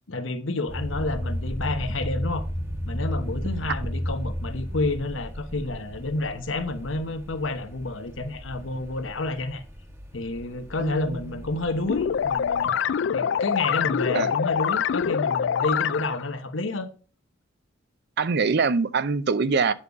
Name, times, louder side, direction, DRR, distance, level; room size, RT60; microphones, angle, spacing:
voice 1, 0.1-2.4 2.8-9.6 10.1-12.8 13.1-16.9, left 2 dB, 90° left, 1.1 m, -29 dB
sound 1, 0.7-12.7, equal, 15° right, 1.1 m, -34 dB
voice 2, 10.8-11.2 14.1-14.3 18.2-19.7, right 4 dB, 60° right, 0.6 m, -23 dB
sound 2, 11.9-16.3, left 7 dB, 65° left, 0.4 m, -25 dB
8.8 x 5.4 x 4.7 m
head